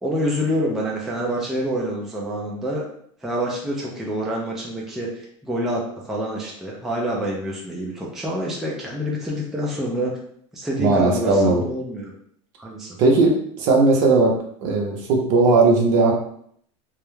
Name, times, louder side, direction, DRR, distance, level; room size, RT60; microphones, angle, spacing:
voice 1, 0.0-2.8 3.2-10.1 10.5-12.1 12.6-13.0, equal, ahead, -3 dB, 0.3 m, -27 dB
voice 2, 10.8-11.6 13.0-14.3 14.6-16.1, right 3 dB, 50° right, 1 dB, 0.6 m, -17 dB
2.2 x 2.1 x 3.0 m, 0.64 s
supercardioid pair, 145°, 16 cm